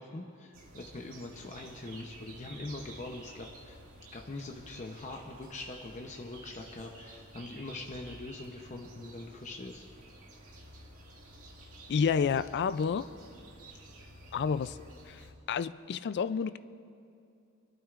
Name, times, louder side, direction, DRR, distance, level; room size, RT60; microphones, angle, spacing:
voice 1, 0.0-3.8 4.1-9.8, left 2 dB, 35° left, 1 dB, 0.7 m, -43 dB
sound 1, 0.5-15.3, right 1 dB, 75° right, 2.2 m, -52 dB
voice 2, 11.9-13.1 14.3-14.8 15.1-15.2 15.5-16.6, left 6 dB, 50° left, 14 dB, 0.3 m, -29 dB
29.5 x 12.0 x 2.5 m, 2.5 s
head